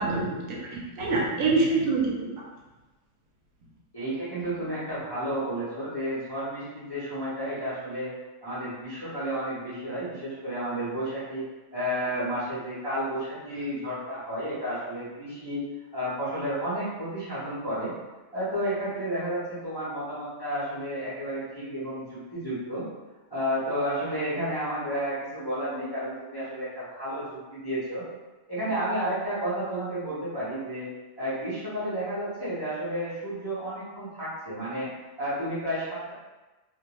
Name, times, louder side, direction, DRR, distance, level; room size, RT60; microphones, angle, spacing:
voice 1, 0.0-2.3, right 3 dB, 75° right, -3 dB, 1.0 m, -26 dB
voice 2, 3.9-8.1 8.4-11.5 11.7-15.6 15.9-17.9 18.3-22.8 23.3-28.0 28.5-30.9 31.2-34.9 35.2-36.1, equal, 25° left, -12 dB, 0.6 m, -31 dB
2.4 x 2.1 x 2.9 m, 1.2 s
omnidirectional pair, 1.4 m